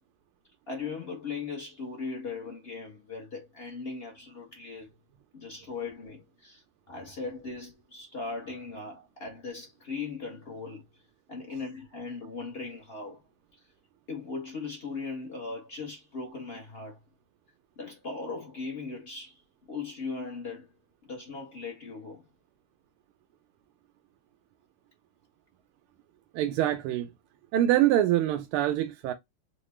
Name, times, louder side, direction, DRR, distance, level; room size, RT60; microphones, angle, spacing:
voice 1, 0.7-4.9 5.3-10.8 11.3-13.2 14.1-17.0 17.8-19.4 19.7-20.7 21.0-22.2, left 4 dB, 50° left, 0.7 m, -38 dB
voice 2, 26.3-27.1 27.5-29.1, right 13 dB, 85° right, 1.5 m, -25 dB
3.9 x 2.2 x 3.1 m
omnidirectional pair, 2.4 m